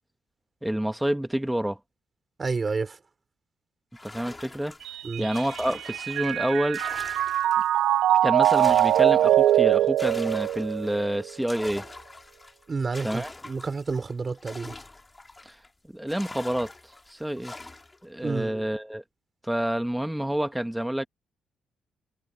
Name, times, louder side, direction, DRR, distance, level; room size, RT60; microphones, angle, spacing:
voice 1, 0.6-1.8 4.0-4.7 5.2-6.8 8.2-11.8 13.0-13.3 15.4-15.5 15.9-16.7 17.1-17.5 18.0-19.0 19.4-21.1, right 1 dB, 5° right, 1.6 m, -28 dB
voice 2, 2.4-3.0 5.0-5.3 12.7-14.7 18.2-18.7, right 4 dB, 30° right, 5.8 m, -30 dB
sound 1, 3.9-7.8 8.2-15.7 16.1-18.0, left 2 dB, 20° left, 4.4 m, -44 dB
Mallet percussion, 4.9-11.3, right 12 dB, 80° right, 0.6 m, -23 dB
cardioid pair, 90°, 0 cm